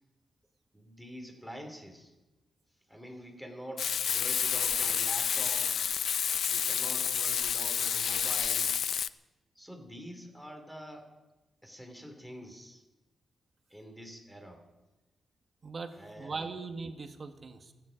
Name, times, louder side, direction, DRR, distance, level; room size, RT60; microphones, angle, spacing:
voice 1, 0.7-2.1 2.9-5.9 6.5-8.9 9.6-11.1 11.6-12.8 13.7-14.6 15.9-16.6, equal, ahead, 4 dB, 2.7 m, -46 dB
Frying (food), 3.8-9.1, left 8 dB, 70° left, 0.5 m, -29 dB
voice 2, 15.6-17.7, right 4 dB, 35° right, 6 dB, 1.5 m, -40 dB
28.5 x 9.8 x 5.0 m, 1.1 s
wide cardioid pair, 135°, 0 cm